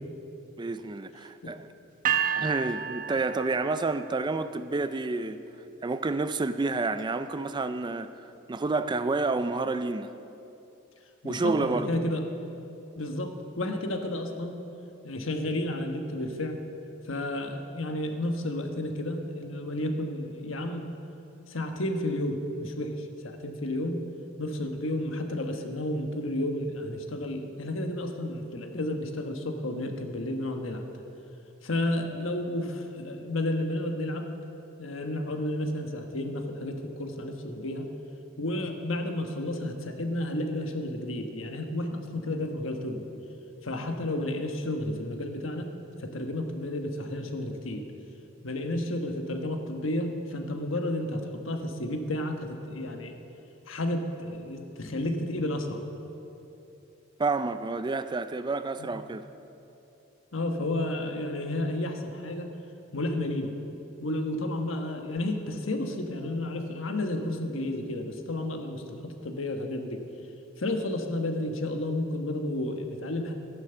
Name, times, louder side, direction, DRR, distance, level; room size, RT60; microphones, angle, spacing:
voice 1, 0.6-1.7 2.4-5.4 5.8-8.1 8.5-10.1 11.2-11.9 57.2-59.3, right 3 dB, 20° right, 0.4 m, -29 dB
sound 1, 2.0-4.1, right 8 dB, 45° right, 0.9 m, -30 dB
voice 2, 11.2-12.2 12.9-14.6 15.0-16.6 17.1-21.0 21.5-24.0 24.4-30.8 31.6-34.3 34.8-37.9 38.4-43.1 43.6-45.7 46.0-47.8 48.4-53.1 53.7-55.8 58.8-58.9 60.3-62.5 62.9-63.5 64.0-70.0 70.6-73.3, left 1 dB, 75° left, 1.3 m, -31 dB
13.0 x 10.5 x 6.9 m
head